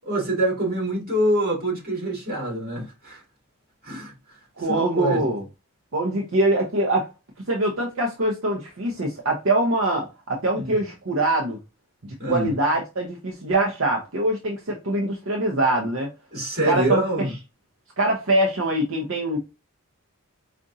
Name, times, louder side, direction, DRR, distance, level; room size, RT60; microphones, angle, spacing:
voice 1, 0.0-3.2 3.8-4.1 4.6-5.3 10.5-10.7 12.2-12.5 16.3-17.3, right 1 dB, 40° right, 2.3 m, -25 dB
voice 2, 4.6-5.4 5.9-7.1 7.5-11.6 12.0-16.1 16.6-17.3 18.0-19.4, right 1 dB, 65° right, 0.7 m, -23 dB
5.0 x 2.5 x 2.7 m
head